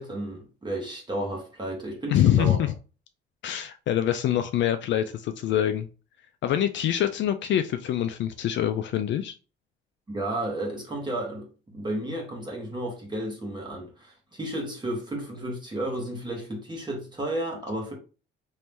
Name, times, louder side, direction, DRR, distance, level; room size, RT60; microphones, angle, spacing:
voice 1, 0.0-2.6 10.1-17.9, right 1 dB, 20° right, 1.5 m, -32 dB
voice 2, 2.1-2.7 3.4-5.9 6.4-9.3, left 11 dB, 65° left, 0.4 m, -25 dB
3.1 x 2.8 x 3.5 m
cardioid pair, 90°, 20 cm